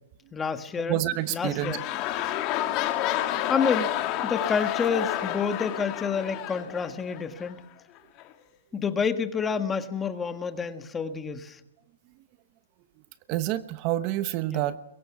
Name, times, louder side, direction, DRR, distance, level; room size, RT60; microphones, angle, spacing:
voice 1, 0.3-1.0 1.3-1.8 3.5-3.9 4.2-7.6 8.7-11.6 14.5-14.6, left 6 dB, 15° left, 9 dB, 1.5 m, -28 dB
voice 2, 0.9-1.8 13.3-14.8, right 14 dB, 35° right, 13 dB, 1.0 m, -28 dB
sound 1, 1.1-7.5 8.2-8.3, left 13 dB, 35° left, 2.1 m, -30 dB
25.0 x 22.5 x 6.2 m, 0.84 s
hypercardioid pair, 150°, 0 cm